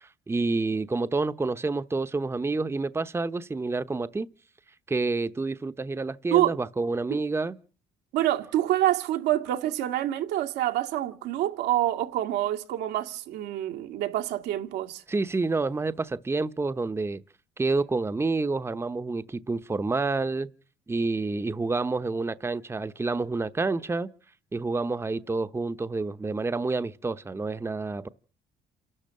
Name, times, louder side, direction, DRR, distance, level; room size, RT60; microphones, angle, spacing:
voice 1, 0.0-4.3 4.9-7.6 15.1-17.2 17.6-20.5 20.9-24.1 24.5-28.1, right 3 dB, 15° right, 0.9 m, -28 dB
voice 2, 8.1-15.0, right 13 dB, 85° right, 2.1 m, -26 dB
28.0 x 12.5 x 7.6 m
cardioid pair, 110°, 17 cm